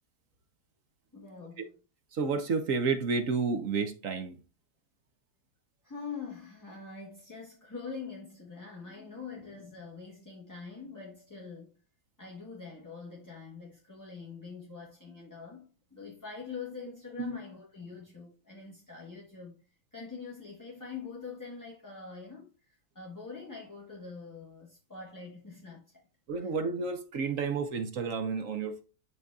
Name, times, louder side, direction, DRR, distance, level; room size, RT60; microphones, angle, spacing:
voice 1, 1.1-1.7 5.8-11.7 12.2-19.6 19.9-26.0 26.4-26.5, left 5 dB, 10° left, 1.3 m, -44 dB
voice 2, 2.1-4.4 17.2-17.4 26.3-28.8, right 4 dB, 55° right, 1.1 m, -31 dB
11.0 x 4.0 x 2.3 m
omnidirectional pair, 1.8 m